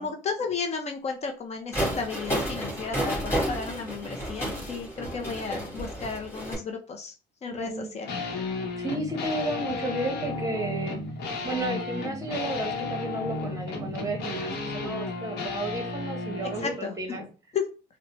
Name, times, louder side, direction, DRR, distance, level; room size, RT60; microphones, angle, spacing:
voice 1, 0.0-7.1 7.4-8.2 16.6-17.3 17.5-17.7, left 5 dB, 40° left, 4 dB, 0.6 m, -33 dB
sound 1, 1.7-6.6, right 1 dB, 15° left, 1.9 m, -31 dB
voice 2, 7.5-7.9 8.8-11.0 11.4-17.2, right 2 dB, 20° right, 3 dB, 1.0 m, -33 dB
sound 2, 8.1-16.8, left 3 dB, 70° left, 0.9 m, -33 dB
4.0 x 2.1 x 3.0 m, 0.34 s
cardioid pair, 110°, 17 cm